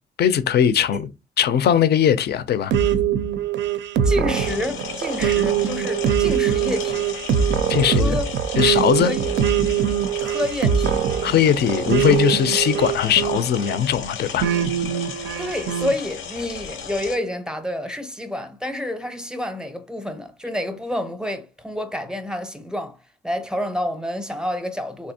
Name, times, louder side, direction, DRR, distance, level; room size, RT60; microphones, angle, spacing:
voice 1, 0.2-1.1 1.4-2.7 7.7-8.2 8.6-9.1 11.2-14.5, left 9 dB, 55° left, 0.5 m, -19 dB
sound 1, 2.7-13.8 14.4-15.9, right 8 dB, 65° right, 0.4 m, -22 dB
voice 2, 4.0-7.1 7.9-8.3 9.0-9.4 10.2-11.1 15.4-23.0 23.2-25.1, left 1 dB, 5° right, 0.6 m, -28 dB
sound 2, 4.3-17.2, left 7 dB, 85° left, 0.7 m, -35 dB
3.4 x 2.8 x 2.7 m
cardioid pair, 90°, 20 cm